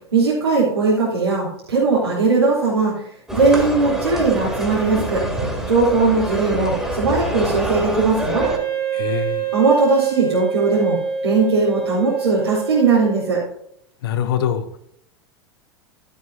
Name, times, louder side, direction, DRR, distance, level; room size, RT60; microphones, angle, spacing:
voice 1, 0.1-3.0 3.3-5.2 5.7-8.5 9.5-11.0 11.2-13.4, right 4 dB, 75° right, -7 dB, 3.8 m, -19 dB
sound 1, 3.3-8.6, right 1 dB, 5° right, 3.3 m, -25 dB
Wind instrument woodwind instrument, 8.4-13.5, right 7 dB, 40° right, 1.5 m, -26 dB
voice 2, 8.9-9.4 14.0-14.8, left 9 dB, 60° left, 10 dB, 0.9 m, -23 dB
13.5 x 8.2 x 2.9 m, 0.72 s
figure-of-eight pair, 85°, 14 cm